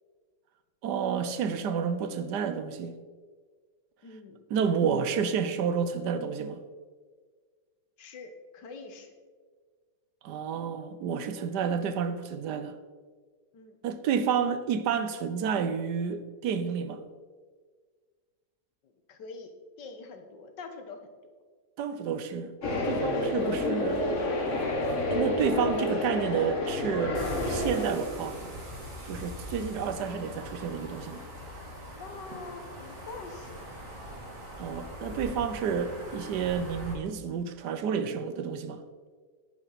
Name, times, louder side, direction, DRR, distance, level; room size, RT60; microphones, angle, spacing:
voice 1, 0.8-3.0 4.5-6.6 10.2-12.7 13.8-17.0 21.8-24.0 25.1-27.2 27.5-28.5 29.0-31.2 34.6-38.8, right 7 dB, 75° right, 1.3 m, -30 dB
voice 2, 4.0-4.4 8.0-9.1 13.5-13.7 18.8-19.5 19.8-21.0 32.0-33.7, left 4 dB, 80° left, 1.8 m, -44 dB
sound 1, 22.6-27.9, left 2 dB, 45° left, 1.6 m, -29 dB
sound 2, 27.1-36.9, equal, 50° right, 2.4 m, -41 dB
10.5 x 9.9 x 4.0 m
omnidirectional pair, 1.9 m